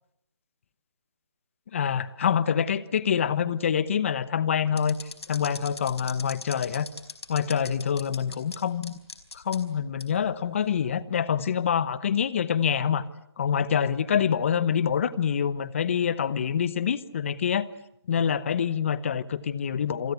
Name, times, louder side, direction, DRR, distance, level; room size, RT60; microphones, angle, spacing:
voice 1, 1.7-5.0 5.3-6.9 7.3-8.9 9.3-13.0 13.4-17.7 18.1-20.1, left 8 dB, 30° left, 18 dB, 1.0 m, -26 dB
sound 1, 4.8-8.6 8.8-9.6 10.0-10.1 10.8-11.0, left 4 dB, 70° left, 4.5 m, -39 dB
28.5 x 23.0 x 8.2 m, 0.76 s
figure-of-eight pair, 165°, 14 cm